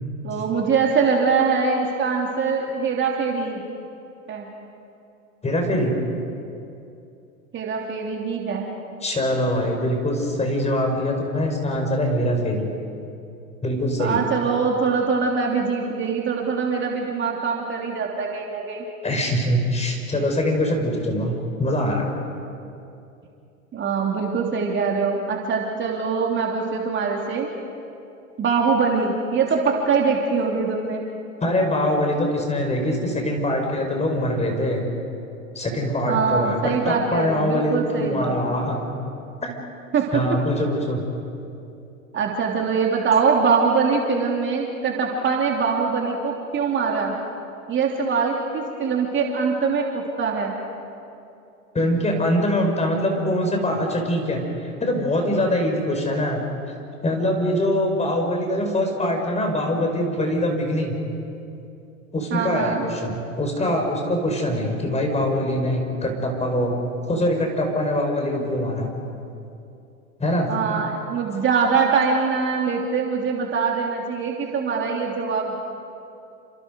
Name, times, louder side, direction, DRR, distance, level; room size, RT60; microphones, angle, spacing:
voice 1, 0.2-3.6 4.3-4.5 7.5-8.7 14.0-18.8 23.7-27.5 28.4-31.0 36.1-38.5 39.9-40.2 42.1-47.2 47.7-50.5 62.3-62.9 68.4-68.5 70.5-75.5, right 5 dB, 30° right, 0 dB, 3.1 m, -23 dB
voice 2, 5.4-5.9 9.0-12.7 13.6-14.2 19.0-21.3 21.6-22.1 31.4-34.8 35.5-38.8 39.4-39.5 40.1-41.0 51.7-56.4 57.0-60.9 62.1-66.8 67.1-68.9 70.2-70.5, left 1 dB, 15° left, 3 dB, 5.1 m, -23 dB
29.5 x 27.0 x 5.3 m, 2.6 s
hypercardioid pair, 100°, 42 cm